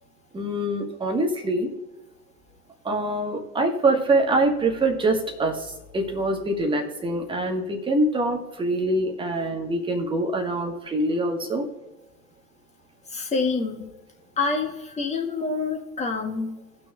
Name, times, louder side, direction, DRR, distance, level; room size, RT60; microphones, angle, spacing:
voice 1, 0.3-1.7 2.8-11.6, right 2 dB, 10° right, 3 dB, 1.4 m, -24 dB
voice 2, 13.1-13.9 14.4-16.6, left 4 dB, 15° left, 1 dB, 1.6 m, -27 dB
18.0 x 6.2 x 2.4 m, 1.0 s
figure-of-eight pair, 95°, 48 cm